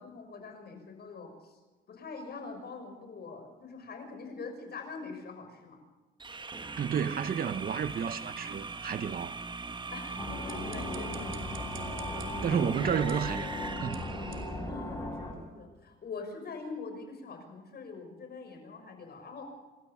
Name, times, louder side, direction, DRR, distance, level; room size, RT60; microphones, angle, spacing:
voice 1, 0.0-1.6 1.9-5.8 9.9-11.6 12.5-12.6 14.6-19.5, left 4 dB, 55° left, 5.9 m, -44 dB
sound 1, 6.2-14.7, right 4 dB, 25° right, 1.2 m, -41 dB
voice 2, 6.8-9.4 12.4-13.5 13.8-14.1, right 7 dB, 45° right, 0.8 m, -31 dB
sound 2, 10.2-15.3, left 1 dB, 15° left, 6.0 m, -37 dB
sound 3, 10.2-15.5, right 9 dB, 80° right, 3.0 m, -54 dB
27.5 x 13.5 x 7.3 m
cardioid pair, 90°, 20 cm